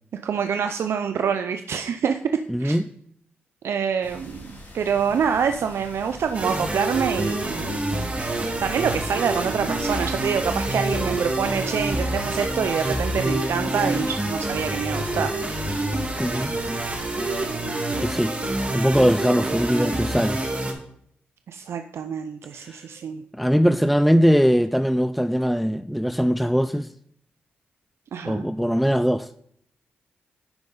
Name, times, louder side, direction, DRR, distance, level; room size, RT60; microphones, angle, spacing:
voice 1, 0.2-2.8 3.6-7.8 8.1-15.4 19.4-19.5 21.5-23.2 28.1-28.4, right 7 dB, 75° right, 0.4 m, -26 dB
voice 2, 2.5-2.8 16.2-16.6 18.0-18.3 18.7-20.4 22.6-22.8 23.3-26.9 28.2-29.3, equal, ahead, 0.4 m, -21 dB
sound 1, 4.0-17.4, left 1 dB, 55° left, 3.2 m, -41 dB
sound 2, 6.3-20.7, right 2 dB, 30° right, 1.7 m, -27 dB
10.5 x 5.3 x 3.9 m
cardioid pair, 55°, 4 cm